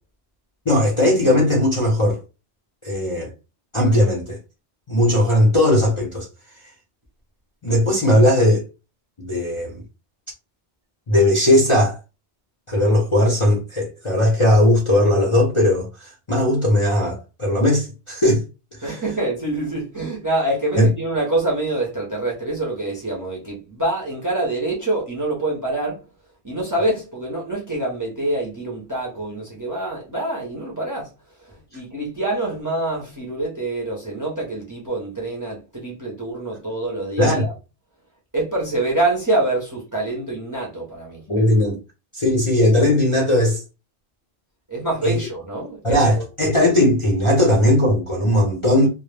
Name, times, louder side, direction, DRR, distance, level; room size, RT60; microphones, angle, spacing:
voice 1, 0.7-2.2 2.8-3.3 3.7-4.4 4.9-6.3 7.6-8.6 9.2-9.8 11.1-12.0 12.7-18.4 18.8-19.0 20.8-20.9 37.2-37.5 41.3-41.8 42.1-43.6 45.0-45.2 45.8-48.9, left 1 dB, 35° left, 0.5 m, -18 dB
voice 2, 18.8-26.0 26.4-31.1 31.5-37.5 38.3-41.2 44.7-46.2, right 2 dB, 20° right, 0.5 m, -25 dB
2.1 x 2.0 x 3.2 m
omnidirectional pair, 1.1 m